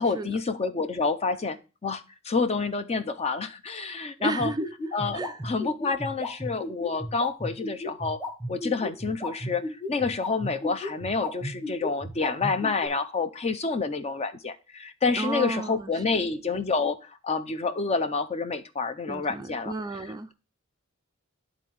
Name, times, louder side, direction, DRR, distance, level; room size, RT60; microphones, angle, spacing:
voice 1, 0.0-4.5 4.9-8.2 8.5-19.7, left 4 dB, 30° left, 0.5 m, -28 dB
voice 2, 4.2-4.7 5.1-5.4 15.2-16.2 19.1-20.3, right 2 dB, 20° right, 0.3 m, -33 dB
sound 1, 4.4-12.9, left 1 dB, 10° left, 1.3 m, -33 dB
11.0 x 3.8 x 3.1 m
head